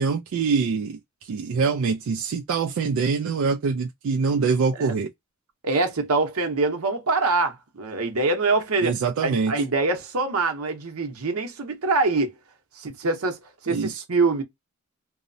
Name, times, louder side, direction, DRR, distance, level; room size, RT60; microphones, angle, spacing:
voice 1, 0.0-5.1 8.8-9.5 13.7-14.0, right 5 dB, 65° right, 0.3 m, -24 dB
voice 2, 5.6-9.0 9.2-12.3 12.8-13.4 13.6-14.4, right 3 dB, 85° right, 0.8 m, -24 dB
2.7 x 2.0 x 2.6 m
head